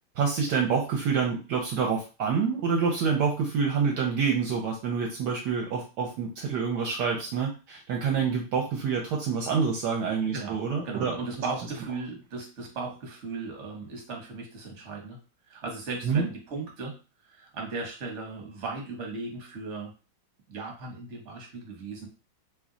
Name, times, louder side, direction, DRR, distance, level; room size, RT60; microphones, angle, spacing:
voice 1, 0.2-11.1 16.0-16.3, right 5 dB, 70° right, 0 dB, 1.1 m, -27 dB
voice 2, 10.8-15.2 15.5-17.0 17.2-19.9 20.5-22.1, right 3 dB, 45° right, 0 dB, 1.1 m, -37 dB
3.0 x 2.2 x 3.7 m, 0.32 s
omnidirectional pair, 2.0 m